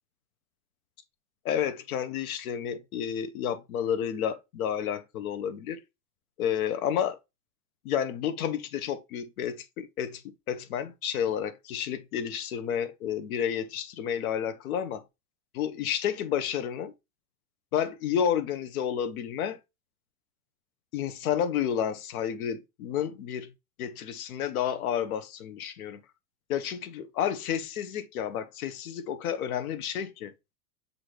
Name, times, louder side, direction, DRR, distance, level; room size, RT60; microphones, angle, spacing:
voice 1, 1.4-5.8 6.4-7.2 7.8-15.0 15.5-16.9 17.7-19.6 20.9-23.5 23.8-26.0 26.5-30.3, left 9 dB, 60° left, 0.7 m, -30 dB
6.1 x 2.6 x 3.1 m
supercardioid pair, 180°, 49 cm